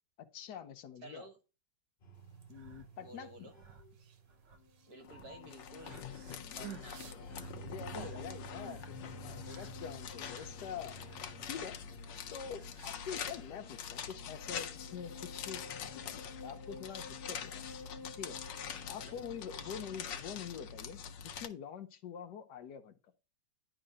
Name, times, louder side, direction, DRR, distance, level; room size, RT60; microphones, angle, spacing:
voice 1, 0.2-1.3 2.5-3.5 6.4-7.2 7.5-8.8 9.2-11.0 11.5-11.8 12.3-15.6 15.9-16.0 16.4-17.6 18.2-18.4 18.9-23.0, left 7 dB, 75° left, 1.5 m, -46 dB
voice 2, 1.0-1.4 3.0-3.5 4.9-6.0 6.6-7.1 19.0-19.2 19.5-19.8, right 1 dB, 60° right, 2.1 m, -52 dB
sound 1, 2.0-20.8, left 1 dB, 40° left, 1.5 m, -52 dB
sound 2, 2.3-13.5, right 9 dB, 85° right, 1.6 m, -55 dB
sound 3, 5.0-21.5, left 8 dB, 90° left, 1.4 m, -45 dB
10.0 x 3.7 x 5.2 m
omnidirectional pair, 1.9 m